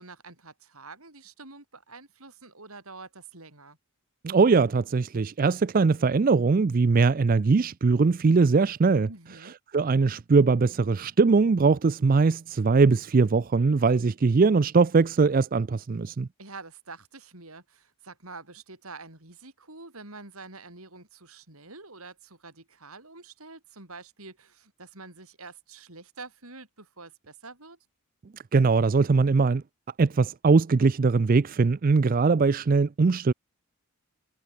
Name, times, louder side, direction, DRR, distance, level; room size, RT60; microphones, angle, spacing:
voice 1, 0.0-3.8 9.1-9.5 16.4-27.8, right 3 dB, 75° right, 7.4 m, -46 dB
voice 2, 4.2-9.1 9.7-16.3 28.5-29.6 30.0-33.3, right 4 dB, 40° right, 0.4 m, -21 dB
head